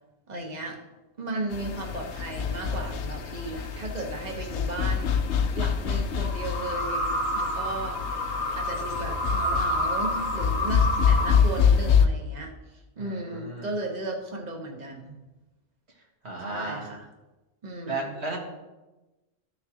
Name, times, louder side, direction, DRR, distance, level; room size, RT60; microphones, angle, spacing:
voice 1, 0.3-0.8 1.2-5.2 5.5-12.5 13.0-15.2 16.5-17.1 17.6-18.2, right 2 dB, 40° right, 1 dB, 1.4 m, -35 dB
sound 1, 1.5-12.1, left 6 dB, 90° left, 1.0 m, -26 dB
sound 2, 6.2-11.4, left 1 dB, 65° left, 1.2 m, -29 dB
voice 2, 13.0-13.7 16.2-16.8 17.9-18.4, right 2 dB, 75° right, -1 dB, 2.0 m, -34 dB
13.5 x 6.4 x 3.0 m, 1.1 s
omnidirectional pair, 1.1 m